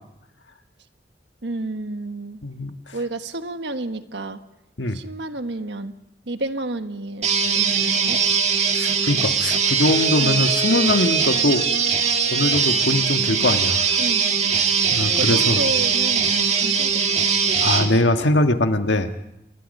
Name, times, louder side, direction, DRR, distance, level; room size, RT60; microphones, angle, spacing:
voice 1, 1.4-2.4 2.9-4.4 4.9-5.9 6.3-7.3 7.5-8.2 10.2-10.5 14.0-14.3 15.2-17.3, right 2 dB, 75° right, 9 dB, 1.3 m, -30 dB
voice 2, 2.4-2.8 4.8-5.0 8.7-11.7 12.3-14.0 14.9-15.6 17.6-19.1, left 2 dB, 85° left, 6 dB, 1.6 m, -21 dB
sound 1, 7.2-17.9, right 6 dB, 35° right, 2.0 m, -21 dB
27.5 x 21.5 x 5.4 m, 0.85 s
head